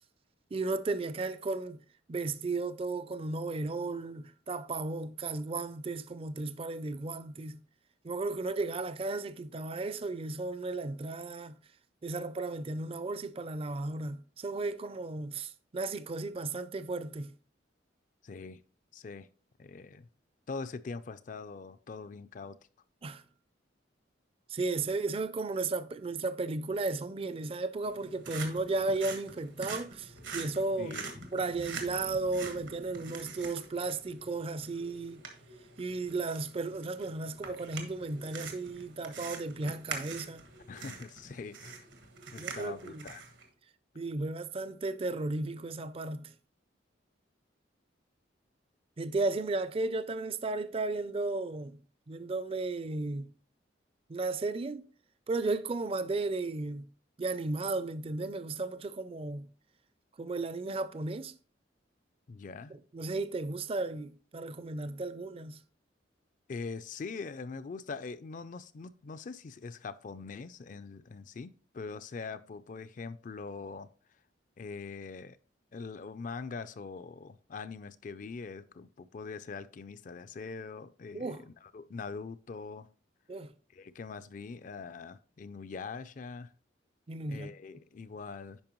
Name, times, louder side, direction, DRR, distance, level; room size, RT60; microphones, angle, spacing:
voice 1, 0.5-1.8 2.1-7.6 8.0-11.5 12.0-17.3 23.0-23.2 24.5-30.9 31.3-35.2 35.8-40.5 42.4-43.1 43.9-46.3 49.0-51.8 52.1-53.3 54.1-54.8 55.3-56.9 57.2-59.5 60.2-61.3 62.7-65.6 81.1-81.4 83.3-83.5 87.1-87.5, right 3 dB, 30° right, 0.4 m, -34 dB
voice 2, 18.2-18.6 18.9-19.3 19.6-20.1 20.5-22.6 30.8-31.1 40.7-41.8 42.3-43.2 62.3-62.7 66.5-73.9 74.6-75.4 75.7-81.4 81.7-82.9 83.7-86.5 87.3-88.6, left 4 dB, 45° left, 0.4 m, -42 dB
sound 1, 27.8-43.4, right 4 dB, 85° right, 1.5 m, -45 dB
8.8 x 5.6 x 3.0 m
head